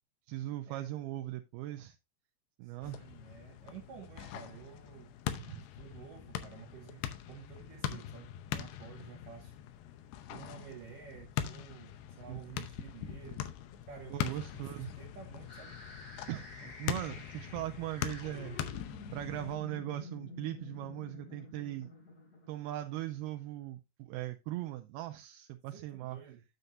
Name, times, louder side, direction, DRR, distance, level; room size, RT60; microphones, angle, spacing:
voice 1, 0.3-2.0 2.6-3.1 5.4-5.6 12.3-12.4 14.1-14.9 16.3-18.6 19.1-21.9 22.5-26.2, right 14 dB, 80° right, 2.4 m, -39 dB
voice 2, 2.6-5.1 5.8-9.5 10.3-13.5 13.9-15.7 16.6-16.7 25.7-26.4, right 8 dB, 65° right, 2.4 m, -51 dB
sound 1, 2.8-19.6, left 10 dB, 90° left, 2.9 m, -42 dB
sound 2, 15.5-23.4, left 2 dB, 45° left, 4.3 m, -50 dB
9.0 x 8.0 x 2.6 m
omnidirectional pair, 4.7 m